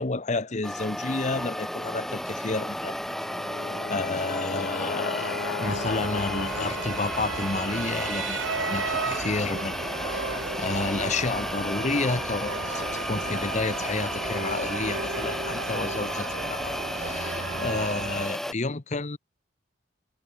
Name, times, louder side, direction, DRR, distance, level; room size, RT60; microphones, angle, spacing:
voice 1, 0.0-3.0 3.9-9.8 10.6-19.2, left 3 dB, 35° left, 0.9 m, -30 dB
sound 1, 0.6-18.5, equal, ahead, 0.8 m, -33 dB
Brass instrument, 3.1-7.4, left 5 dB, 70° left, 0.7 m, -36 dB
sound 2, 5.6-18.3, right 4 dB, 75° right, 2.2 m, -34 dB
head